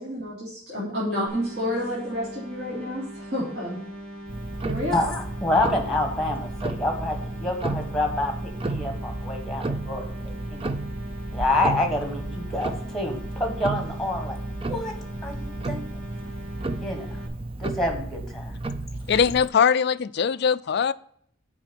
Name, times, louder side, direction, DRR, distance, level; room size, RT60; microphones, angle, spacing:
voice 1, 0.0-3.8 4.6-5.0, equal, 50° right, -7 dB, 3.3 m, -30 dB
sound 1, 1.3-17.3, right 1 dB, 75° right, 2.1 m, -40 dB
Tick-tock, 4.3-19.5, right 2 dB, 25° right, 0.5 m, -33 dB
voice 2, 4.9-10.7 11.3-14.3 14.7-14.9 15.2-16.0 16.8-17.1 17.6-18.6, left 1 dB, ahead, 4 dB, 1.6 m, -27 dB
voice 3, 19.1-20.9, left 7 dB, 50° left, 16 dB, 0.3 m, -21 dB
7.3 x 5.0 x 7.0 m, 0.65 s
head